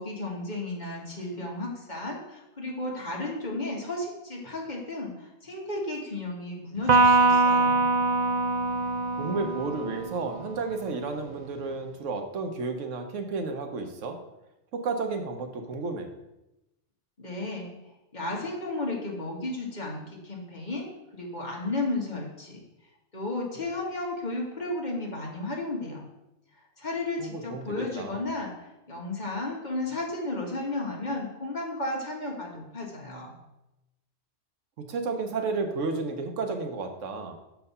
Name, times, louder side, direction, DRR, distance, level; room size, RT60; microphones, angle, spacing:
voice 1, 0.0-7.9 17.2-17.7 18.1-22.6 23.1-26.1 26.8-33.3, left 2 dB, 40° left, -2 dB, 1.5 m, -33 dB
Electric guitar, 6.9-10.4, right 3 dB, 55° right, 0.5 m, -23 dB
voice 2, 9.2-14.2 14.7-16.1 27.2-28.2 34.8-37.4, right 4 dB, 80° right, 5 dB, 1.2 m, -32 dB
6.6 x 4.6 x 5.4 m, 0.94 s
omnidirectional pair, 1.3 m